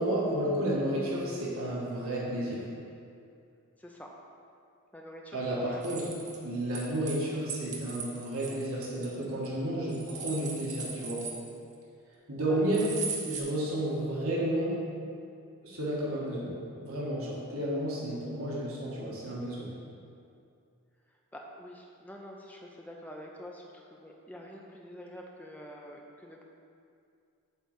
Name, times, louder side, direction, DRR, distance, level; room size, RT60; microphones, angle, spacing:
voice 1, 0.0-2.6 5.3-6.0 6.4-11.2 12.3-12.8 13.2-14.8 15.6-16.5 16.8-19.7, right 1 dB, 75° right, -6 dB, 1.6 m, -31 dB
voice 2, 3.8-4.1 4.9-6.3 12.5-13.0 21.1-26.4, equal, 5° left, -1 dB, 0.6 m, -47 dB
sound 1, 5.8-7.2 7.5-9.5 9.9-11.7 12.7-13.4, right 5 dB, 35° right, 0.8 m, -39 dB
8.0 x 4.0 x 6.5 m, 2.4 s
head